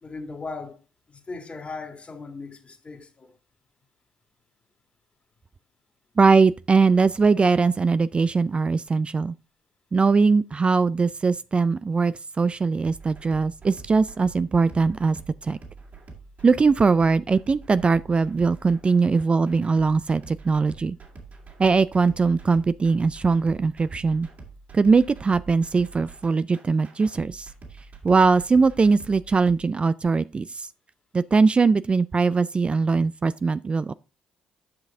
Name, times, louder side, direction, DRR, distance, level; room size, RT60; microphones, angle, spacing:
voice 1, 0.0-0.8 1.1-3.3, left 3 dB, 35° left, 2.0 m, -38 dB
voice 2, 6.2-9.3 9.9-15.2 15.4-15.6 16.4-21.0 21.6-24.3 24.7-27.5 28.0-30.7 31.1-33.9, right 4 dB, 30° right, 0.3 m, -21 dB
sound 1, 12.8-29.6, right 4 dB, 50° right, 2.6 m, -46 dB
9.7 x 5.7 x 3.5 m
hypercardioid pair, 50°, 4 cm